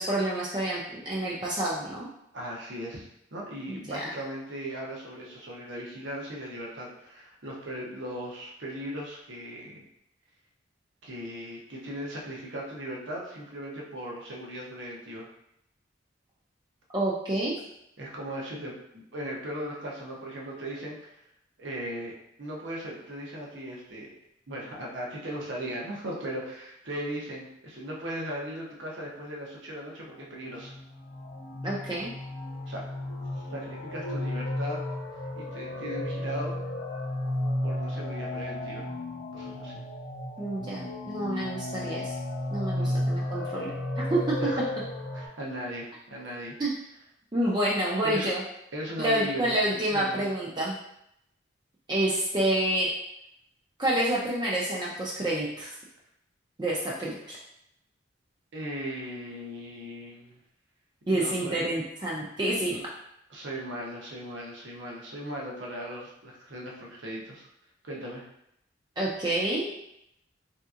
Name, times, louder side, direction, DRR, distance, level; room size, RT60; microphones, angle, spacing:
voice 1, 0.0-2.1 3.7-4.1 16.9-17.5 31.6-32.1 40.4-42.1 42.5-43.7 44.0-44.2 46.6-46.7 47.3-48.4 49.0-50.8 51.9-52.9 53.8-55.8 56.6-57.4 61.1-62.8 69.0-69.7, right 1 dB, 20° right, -5 dB, 0.4 m, -28 dB
voice 2, 2.3-9.8 11.0-15.3 18.0-21.2 21.6-24.1 24.5-30.7 32.7-32.8 33.5-34.8 35.3-36.6 37.6-38.8 39.3-39.7 42.8-43.0 44.4-44.7 45.1-46.6 48.0-48.3 48.7-49.6 49.9-50.2 58.5-60.4 61.1-61.7 63.3-67.5 67.8-68.3, equal, 70° right, -2 dB, 0.7 m, -38 dB
sound 1, 30.5-45.3, left 1 dB, 45° left, 0.5 m, -33 dB
3.4 x 2.8 x 2.4 m, 0.77 s
head